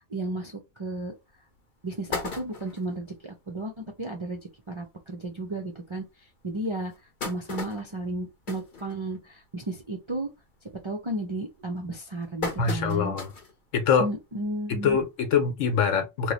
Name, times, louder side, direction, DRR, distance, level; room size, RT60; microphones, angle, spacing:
voice 1, 0.1-0.5 0.8-1.1 1.8-4.4 4.7-6.0 6.4-6.9 7.2-10.3 10.8-13.2 14.0-15.0, right 1 dB, 50° right, 0.3 m, -33 dB
sound 1, 1.0-1.1 1.6-1.7 1.9-2.9 3.5-3.6 3.9-4.0 4.3-4.5 5.2-5.3 5.8-5.9 6.6-9.5 9.9-10.2 10.5-10.9 11.6-13.6 14.0-14.1 15.3-15.4, left 4 dB, 45° left, 0.9 m, -37 dB
voice 2, 12.6-13.3 13.7-14.1 14.7-16.3, left 6 dB, 90° left, 1.2 m, -24 dB
3.0 x 2.1 x 3.9 m
omnidirectional pair, 1.3 m